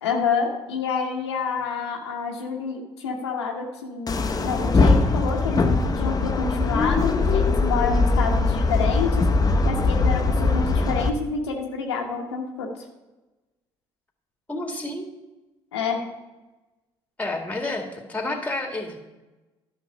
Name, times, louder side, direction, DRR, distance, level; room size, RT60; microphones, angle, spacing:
voice 1, 0.0-9.2 9.6-12.9 15.7-16.0, left 5 dB, 85° left, 0 dB, 1.1 m, -28 dB
sound 1, 4.1-11.1, left 3 dB, 30° left, 0.9 m, -21 dB
voice 2, 14.5-15.0 17.2-19.0, left 2 dB, 10° left, 3 dB, 2.0 m, -30 dB
11.0 x 5.8 x 5.5 m, 1.1 s
hypercardioid pair, 55°, 14 cm